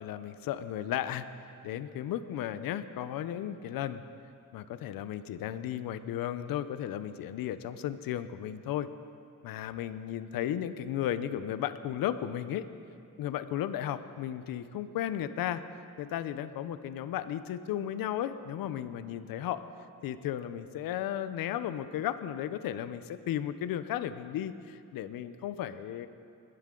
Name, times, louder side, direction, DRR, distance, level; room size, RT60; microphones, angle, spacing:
voice 1, 0.0-4.0 4.5-8.9 9.4-12.7 13.2-15.6 16.0-19.6 20.0-26.1, left 11 dB, 85° left, 13 dB, 0.7 m, -34 dB
20.5 x 11.0 x 3.8 m, 2.6 s
cardioid pair, 85°, 34 cm